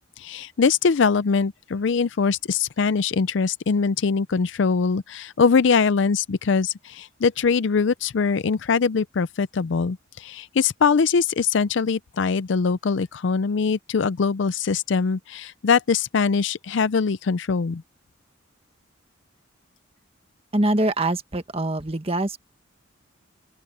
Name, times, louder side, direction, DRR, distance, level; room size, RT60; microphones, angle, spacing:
voice 1, 0.0-17.8, left 5 dB, 65° left, 0.4 m, -22 dB
voice 2, 20.5-22.4, right 1 dB, 30° right, 1.6 m, -24 dB
open air
head